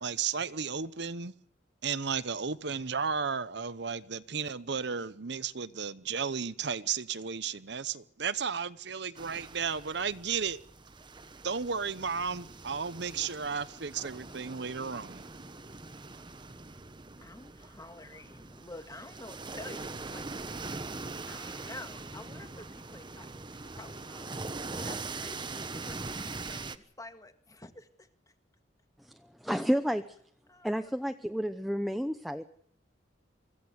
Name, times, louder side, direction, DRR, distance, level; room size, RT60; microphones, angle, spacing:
voice 1, 0.0-1.3 1.8-10.6 11.4-15.4, right 6 dB, 65° right, 0.9 m, -34 dB
sound 1, 9.1-26.8, right 3 dB, 25° right, 1.1 m, -42 dB
voice 2, 17.2-20.3 21.3-24.4 24.8-28.1 30.5-30.9, left 2 dB, 20° left, 1.8 m, -49 dB
voice 3, 29.4-30.0 30.6-32.4, equal, ahead, 0.8 m, -30 dB
25.0 x 15.5 x 8.1 m
head